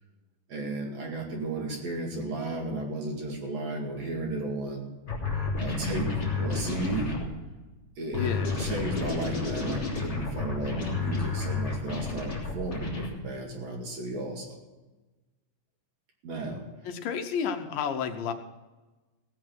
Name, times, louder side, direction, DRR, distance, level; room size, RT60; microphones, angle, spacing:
voice 1, 0.5-4.9 5.6-7.1 8.0-14.6 16.2-16.6, right 2 dB, 50° right, 0 dB, 3.2 m, -34 dB
sound 1, 5.1-7.3 8.1-13.1, left 3 dB, 30° left, 3.5 m, -31 dB
voice 2, 8.1-8.6 16.9-18.3, left 7 dB, 80° left, 7 dB, 2.6 m, -31 dB
17.5 x 8.5 x 6.2 m, 1.2 s
omnidirectional pair, 4.1 m